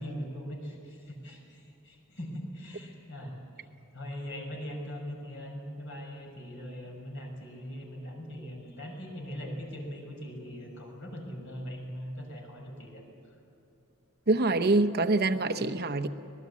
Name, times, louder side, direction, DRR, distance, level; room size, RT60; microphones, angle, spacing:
voice 1, 0.0-3.7 3.9-13.0, equal, 60° left, 1 dB, 6.3 m, -41 dB
voice 2, 14.3-16.1, right 2 dB, 45° right, 8 dB, 0.9 m, -25 dB
25.5 x 20.0 x 8.4 m, 2.6 s
head